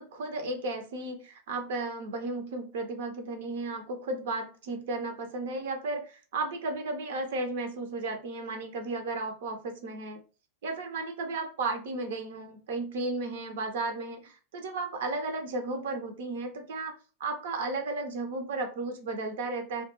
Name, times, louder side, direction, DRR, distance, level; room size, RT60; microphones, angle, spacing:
voice 1, 0.0-10.2 10.6-16.9 17.2-19.8, right 3 dB, 55° right, 5 dB, 0.5 m, -34 dB
2.2 x 2.2 x 2.8 m, 0.35 s
figure-of-eight pair, 90°, 0 cm